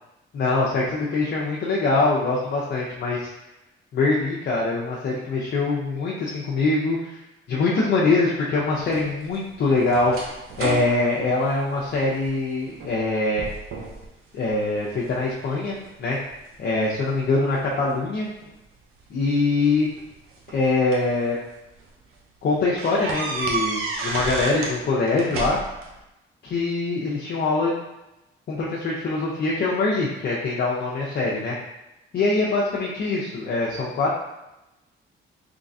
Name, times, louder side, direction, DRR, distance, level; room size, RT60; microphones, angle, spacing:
voice 1, 0.3-3.3 3.9-7.2 7.5-10.1 10.6-13.5 14.3-16.2 16.6-18.3 19.1-19.9 20.5-21.4 22.4-25.6 26.4-27.7 28.5-31.6 32.1-34.1, left 3 dB, 50° left, -5 dB, 0.6 m, -23 dB
sound 1, 8.9-12.3 12.7-13.1 13.4-14.1 14.5-15.2 15.8-17.3 18.4-18.5 19.7-21.2 21.7-21.8 22.1-22.2 22.8-24.8 25.1-25.9, right 3 dB, 90° right, 0.7 m, -32 dB
3.6 x 3.3 x 2.6 m, 0.94 s
cardioid pair, 115°, 21 cm